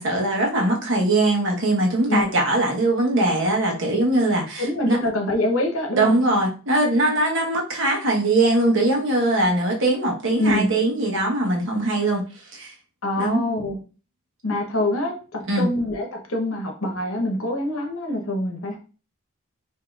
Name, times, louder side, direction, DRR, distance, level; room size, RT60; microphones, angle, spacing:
voice 1, 0.0-5.0 5.9-12.2 12.5-12.7 13.2-13.4 15.5-15.7, right 2 dB, 65° right, 0 dB, 1.1 m, -21 dB
voice 2, 4.6-6.1 10.4-10.7 13.0-13.8 14.4-18.8, left 1 dB, 80° left, 2 dB, 0.9 m, -25 dB
5.1 x 2.8 x 2.4 m, 0.36 s
head